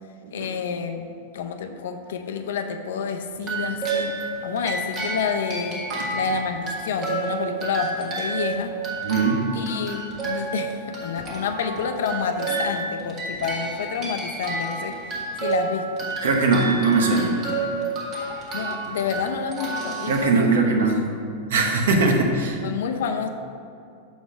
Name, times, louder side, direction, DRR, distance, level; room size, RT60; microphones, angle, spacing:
voice 1, 0.3-5.8 6.1-8.8 9.5-15.0 15.4-16.1 18.5-20.5 21.0-21.1 22.6-23.3, left 6 dB, 90° left, 6 dB, 0.6 m, -29 dB
sound 1, 3.4-20.8, right 3 dB, 30° right, 1.4 m, -30 dB
voice 2, 9.0-9.5 16.2-17.3 20.1-21.0 21.5-22.6, right 3 dB, 90° right, 2 dB, 1.1 m, -20 dB
6.9 x 4.1 x 5.0 m, 2.6 s
supercardioid pair, 155°, 0 cm